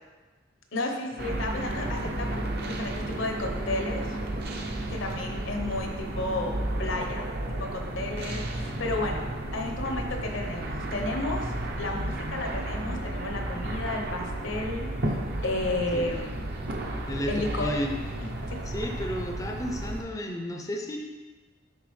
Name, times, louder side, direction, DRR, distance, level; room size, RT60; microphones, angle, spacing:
voice 1, 0.7-4.0 4.9-9.2 9.5-16.3 17.3-17.8 18.5-18.6, left 2 dB, 80° left, 3 dB, 0.9 m, -32 dB
sound 1, 1.2-20.0, right 1 dB, 55° right, 0.7 m, -33 dB
voice 2, 17.1-17.9 18.7-21.0, equal, 20° left, 2 dB, 0.5 m, -32 dB
10.0 x 3.8 x 3.2 m, 1.3 s
head